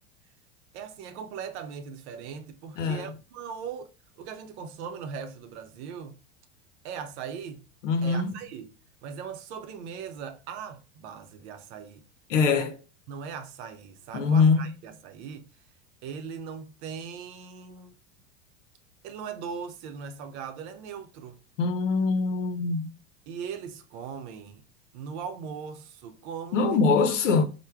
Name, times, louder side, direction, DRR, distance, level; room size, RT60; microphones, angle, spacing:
voice 1, 0.7-3.9 4.2-6.2 6.8-7.6 8.0-12.0 12.3-12.7 13.1-15.5 16.0-18.0 19.0-21.4 23.3-24.6 24.9-26.8, right 6 dB, 60° right, 0.7 m, -39 dB
voice 2, 7.8-8.3 12.3-12.7 14.1-14.6 21.6-22.9 26.5-27.4, left 4 dB, 80° left, 0.7 m, -23 dB
3.2 x 2.1 x 3.4 m
hypercardioid pair, 90°, 37 cm